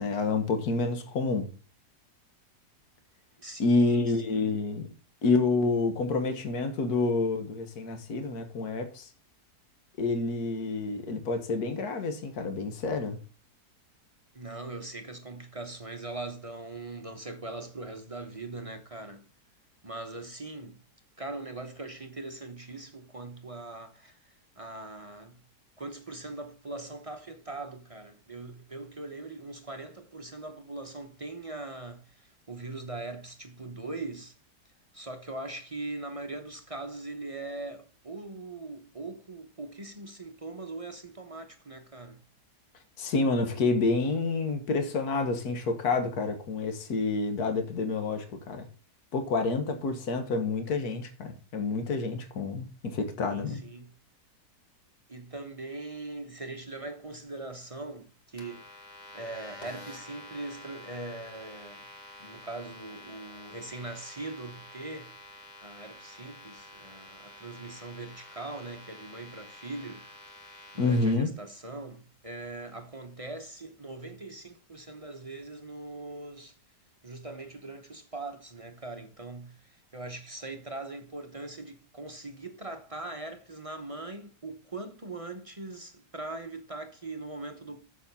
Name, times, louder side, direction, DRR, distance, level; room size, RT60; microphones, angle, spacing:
voice 1, 0.0-1.5 3.6-4.9 5.2-9.1 10.0-13.2 43.0-48.7 49.1-53.6 70.8-71.3, left 3 dB, 65° left, 1.8 m, -28 dB
voice 2, 3.4-4.4 14.3-19.3 19.8-20.8 21.2-25.4 25.8-34.3 34.9-42.2 53.1-53.9 55.1-58.8 59.1-61.8 62.2-70.1 70.7-76.6 77.0-87.8, right 2 dB, 25° right, 0.8 m, -41 dB
sound 1, 58.4-71.1, left 1 dB, 25° left, 1.8 m, -48 dB
7.2 x 7.1 x 5.5 m
omnidirectional pair, 1.8 m